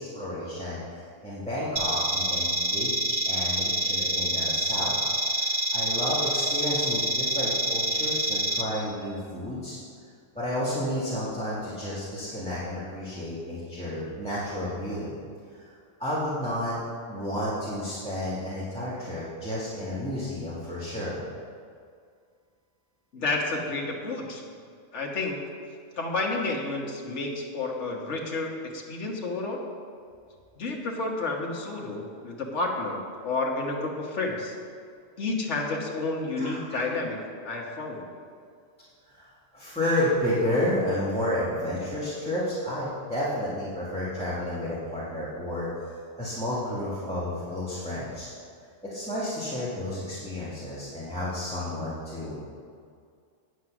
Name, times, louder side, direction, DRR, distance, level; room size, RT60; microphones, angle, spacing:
voice 1, 0.0-4.9 5.3-9.8 10.3-15.1 15.5-15.7 16.0-16.8 17.1-21.2 36.3-36.8 39.1-48.3 48.8-52.4, left 1 dB, 5° left, -10 dB, 1.9 m, -31 dB
sound 1, 1.8-8.6, right 1 dB, 30° right, 0.8 m, -27 dB
voice 2, 23.1-24.4 24.9-25.4 26.0-29.6 30.6-34.5 35.2-37.2 37.4-38.1, left 3 dB, 65° left, -1 dB, 1.8 m, -30 dB
9.4 x 8.2 x 6.1 m, 2.2 s
omnidirectional pair, 1.3 m